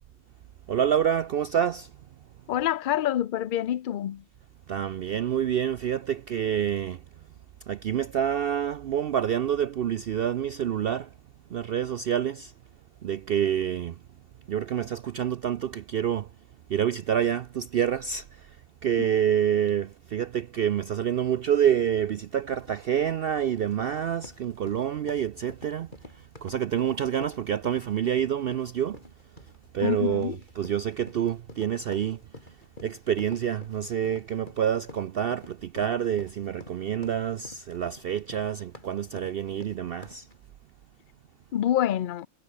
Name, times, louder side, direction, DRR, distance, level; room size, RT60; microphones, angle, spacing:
voice 1, 0.7-1.9 4.7-7.0 7.7-11.1 11.5-12.5 13.0-14.0 14.5-16.3 16.7-18.6 18.8-29.0 29.7-32.6 32.8-40.3, right 9 dB, 80° right, 0.5 m, -27 dB
voice 2, 2.5-4.2 19.0-19.1 29.8-30.4 41.5-42.3, left 11 dB, 70° left, 0.4 m, -27 dB
sound 1, 22.3-40.4, left 1 dB, 30° left, 4.9 m, -48 dB
omnidirectional pair, 1.6 m